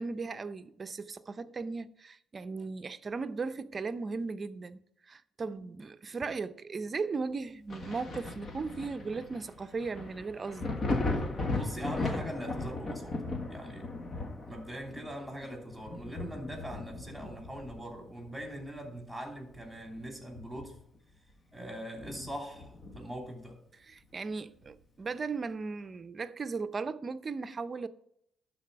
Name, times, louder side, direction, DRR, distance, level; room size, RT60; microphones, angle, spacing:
voice 1, 0.0-4.8 5.1-10.7 23.8-27.9, right 4 dB, 35° right, 0.6 m, -37 dB
Thunder, 7.7-19.0 19.4-21.0 21.3-21.4 22.0-23.3 24.7-24.8, left 2 dB, 45° left, 1.5 m, -37 dB
voice 2, 11.3-13.2 13.5-13.9 14.4-20.8 21.5-23.6, equal, 5° right, 3.0 m, -42 dB
11.5 x 4.1 x 6.7 m
cardioid pair, 90°, 0 cm